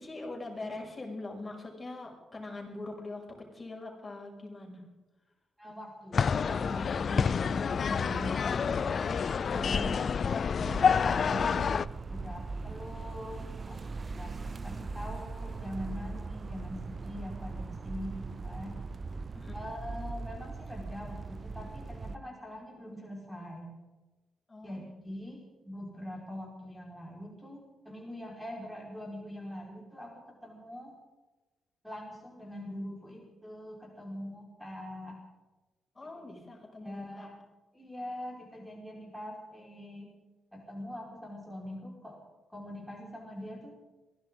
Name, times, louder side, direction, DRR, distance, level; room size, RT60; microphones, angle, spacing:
voice 1, 0.0-4.9 9.7-10.0 19.3-19.6 24.5-24.8 35.9-37.3, left 2 dB, 30° left, -1 dB, 6.5 m, -42 dB
voice 2, 5.6-11.5 12.1-18.8 19.5-23.7 24.6-30.9 31.8-35.2 36.1-36.4 36.8-37.3 37.7-40.1 40.5-42.2 42.5-43.7, left 1 dB, ahead, -1 dB, 4.9 m, -43 dB
sound 1, 6.1-11.9, left 6 dB, 55° left, 0.4 m, -28 dB
sound 2, 10.6-22.1, right 3 dB, 45° right, 0.7 m, -40 dB
22.5 x 15.5 x 3.9 m, 1.2 s
hypercardioid pair, 45°, 0 cm